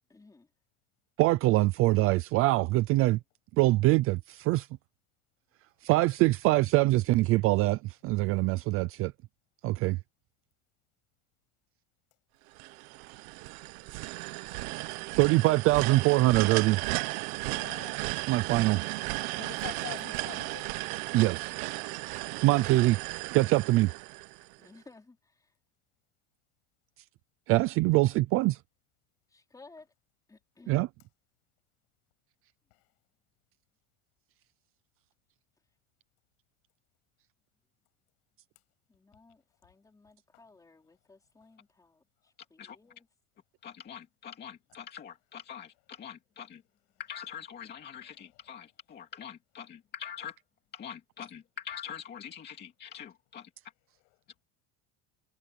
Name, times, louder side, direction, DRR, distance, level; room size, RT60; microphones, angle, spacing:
voice 1, 0.1-0.5 24.6-25.5 29.3-29.9 30.3-30.8 38.9-43.1, left 3 dB, 10° left, 4.4 m, -57 dB
voice 2, 1.2-3.2 3.6-4.7 5.8-9.1 9.6-10.0 15.1-16.8 18.3-18.8 21.1-21.5 22.4-23.0 23.3-23.9 27.5-28.6 30.7-30.9, right 19 dB, 35° right, 0.4 m, -24 dB
sound 1, 12.6-24.7, right 22 dB, 80° right, 1.0 m, -35 dB
voice 3, 17.5-17.9 19.4-20.7, left 31 dB, 60° left, 7.4 m, -44 dB
voice 4, 43.6-46.6 47.0-50.4 50.7-53.5, left 8 dB, 25° left, 2.4 m, -44 dB
cardioid pair, 175°, 42 cm